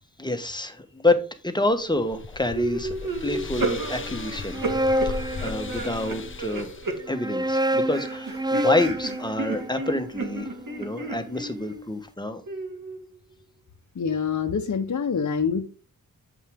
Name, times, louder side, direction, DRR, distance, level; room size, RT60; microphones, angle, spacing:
voice 1, 0.2-4.6 5.0-6.7 7.1-12.4, left 2 dB, 10° left, 1.3 m, -28 dB
sound 1, 1.7-7.0, left 5 dB, 35° left, 0.6 m, -38 dB
sound 2, 2.5-7.5 7.8-12.0 12.5-13.2, right 3 dB, 65° right, 2.1 m, -33 dB
sound 3, 4.3-6.2 7.0-11.2, equal, 10° right, 0.4 m, -28 dB
voice 2, 13.9-15.6, left 6 dB, 55° left, 1.0 m, -25 dB
8.2 x 5.5 x 3.7 m
wide cardioid pair, 80°, 36 cm